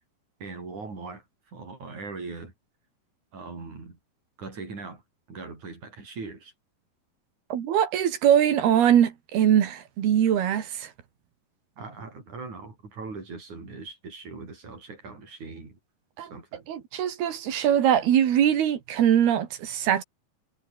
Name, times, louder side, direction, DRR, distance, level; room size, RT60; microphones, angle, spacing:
voice 1, 0.4-1.2 1.5-2.5 3.3-4.0 4.4-5.0 5.3-6.5 11.8-15.8 16.3-16.6, right 4 dB, 50° right, 8.4 m, -40 dB
voice 2, 7.5-10.9 16.2-16.3 16.7-20.0, right 10 dB, 80° right, 4.2 m, -22 dB
omnidirectional pair, 4.4 m